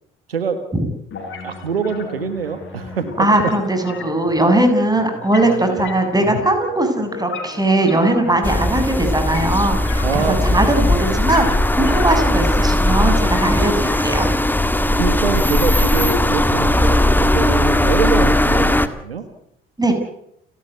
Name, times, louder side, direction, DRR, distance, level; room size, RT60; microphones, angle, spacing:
voice 1, 0.3-0.6 1.4-3.3 5.7-5.9 8.5-8.7 10.0-10.9 13.8-13.9 15.0-19.2, right 6 dB, 90° right, 10 dB, 1.7 m, -25 dB
sound 1, 1.1-17.1, left 4 dB, 40° left, 6.1 m, -34 dB
voice 2, 3.2-10.0 10.4-11.5 11.8-14.3 19.8-19.9, right 1 dB, 15° right, 6 dB, 7.4 m, -19 dB
sound 2, 8.4-18.9, left 1 dB, 5° left, 2.0 m, -18 dB
30.0 x 13.0 x 9.5 m, 0.74 s
figure-of-eight pair, 55°, 29 cm